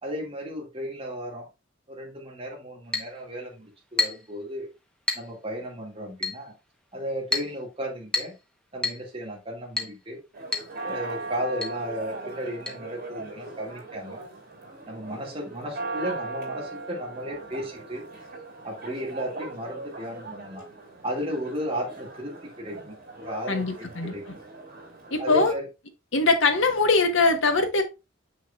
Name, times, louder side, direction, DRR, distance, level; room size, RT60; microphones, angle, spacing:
voice 1, 0.0-1.5 1.9-4.7 5.1-6.5 6.9-8.4 8.7-10.2 10.8-14.2 14.9-18.0 18.6-20.7 21.0-24.2 25.2-25.7, equal, 30° right, 2.2 m, -34 dB
Chink clink, 2.9-3.1 4.0-4.3 5.1-5.3 6.2-6.4 7.3-7.5 8.1-8.4 8.8-9.0 9.8-10.0 10.5-10.7 11.0-11.1 11.6-11.8 12.7-12.8, left 3 dB, 5° left, 1.0 m, -28 dB
Church bell, 10.3-25.3, right 3 dB, 50° right, 3.4 m, -39 dB
voice 2, 23.5-24.1 25.1-25.5 26.1-27.8, left 3 dB, 70° left, 1.2 m, -22 dB
6.5 x 6.2 x 2.4 m
head